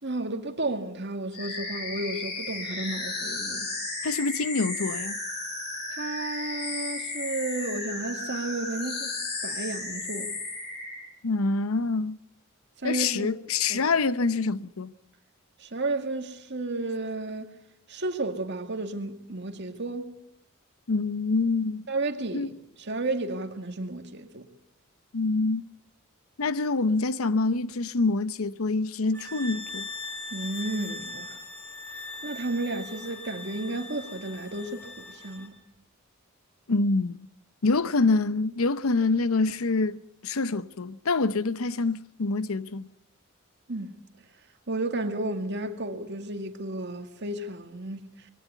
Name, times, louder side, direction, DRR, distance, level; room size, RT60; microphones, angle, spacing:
voice 1, 0.0-3.7 5.9-9.1 9.4-10.3 12.8-13.3 13.7-13.8 15.6-17.5 17.9-20.2 21.9-22.5 22.8-24.5 30.3-31.3 32.2-35.6 43.7-43.9 44.7-48.0, right 2 dB, 55° right, 2.1 m, -32 dB
sound 1, 1.3-11.0, left 2 dB, 50° left, 5.4 m, -34 dB
voice 2, 4.0-5.2 11.2-12.2 12.8-14.9 20.9-21.9 22.3-22.5 25.1-25.7 26.4-29.9 36.7-37.3 37.6-42.9, left 3 dB, 85° left, 0.8 m, -26 dB
sound 2, 29.1-35.5, left 2 dB, 10° left, 3.9 m, -40 dB
22.0 x 17.5 x 8.3 m
head